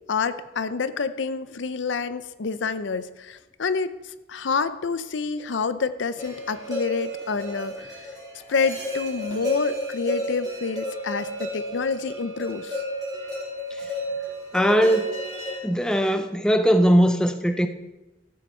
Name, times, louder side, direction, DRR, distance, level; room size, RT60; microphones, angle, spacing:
voice 1, 0.1-3.9 4.3-8.0 8.5-12.8, left 5 dB, 70° left, 13 dB, 0.5 m, -28 dB
sound 1, 6.2-15.6, equal, 20° right, 2.5 m, -32 dB
voice 2, 14.5-15.2 15.6-17.7, equal, 5° left, 7 dB, 0.5 m, -20 dB
14.0 x 7.8 x 4.3 m, 1.1 s
head